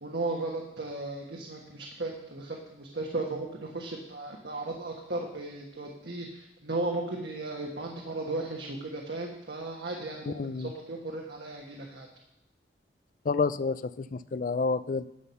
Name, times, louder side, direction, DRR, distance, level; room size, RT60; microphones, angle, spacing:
voice 1, 0.0-12.1, right 2 dB, 65° right, 0 dB, 1.5 m, -36 dB
voice 2, 10.3-10.7 13.3-15.1, left 4 dB, 50° left, 16 dB, 0.4 m, -29 dB
11.5 x 8.0 x 5.6 m, 0.85 s
head